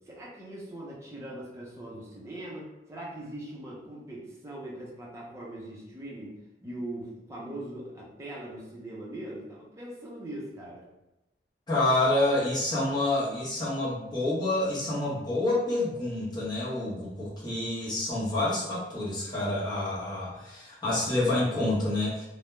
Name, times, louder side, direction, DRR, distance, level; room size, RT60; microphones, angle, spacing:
voice 1, 0.1-10.8, right 1 dB, 15° right, -5 dB, 0.6 m, -41 dB
voice 2, 11.7-22.2, left 2 dB, 25° left, -8 dB, 0.9 m, -28 dB
2.2 x 2.1 x 3.0 m, 0.97 s
head